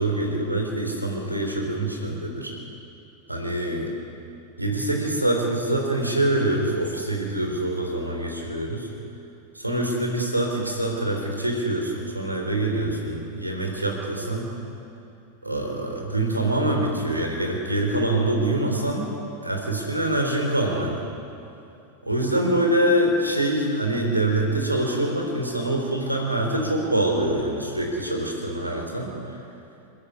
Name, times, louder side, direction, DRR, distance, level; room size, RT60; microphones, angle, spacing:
voice 1, 0.0-2.5 3.3-3.9 4.6-8.9 9.5-14.5 15.4-19.1 19.4-21.0 22.0-29.1, right 1 dB, 85° right, 1 dB, 3.8 m, -25 dB
29.0 x 10.5 x 8.5 m, 2.7 s
figure-of-eight pair, 90°, 0 cm